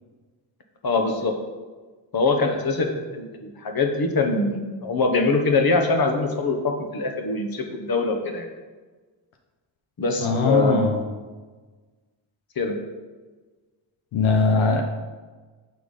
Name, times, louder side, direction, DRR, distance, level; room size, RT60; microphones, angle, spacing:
voice 1, 0.8-1.3 2.1-8.5 10.0-10.8 12.6-12.8, left 3 dB, 50° left, 4 dB, 1.1 m, -23 dB
voice 2, 10.2-11.0 14.1-14.8, left 3 dB, 85° left, 3 dB, 0.7 m, -20 dB
6.9 x 4.0 x 4.9 m, 1.4 s
cardioid pair, 50°, 48 cm